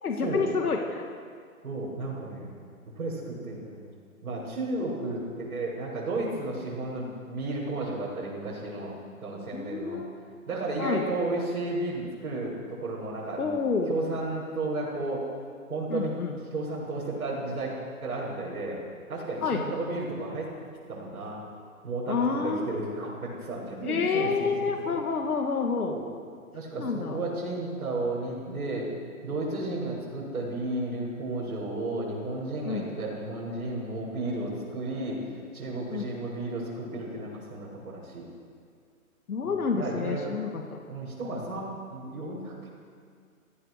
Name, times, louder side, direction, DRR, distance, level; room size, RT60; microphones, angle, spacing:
voice 1, 0.0-1.0 9.5-10.2 10.8-11.0 13.4-13.9 15.9-16.3 19.4-19.6 22.1-22.8 23.8-25.9 26.8-27.2 32.7-32.8 35.9-36.1 39.3-40.6, left 5 dB, 80° left, 3 dB, 2.2 m, -28 dB
voice 2, 1.6-2.5 3.0-3.8 4.2-8.9 9.2-10.0 10.5-13.5 13.9-15.3 15.7-16.1 16.5-17.7 18.0-18.8 19.1-20.5 20.9-21.4 21.8-25.0 25.8-26.1 26.5-28.9 29.2-38.2 39.4-40.4 40.9-42.7, right 2 dB, 70° right, -6 dB, 7.3 m, -33 dB
25.0 x 16.5 x 6.7 m, 2.1 s
hypercardioid pair, 160°, 43 cm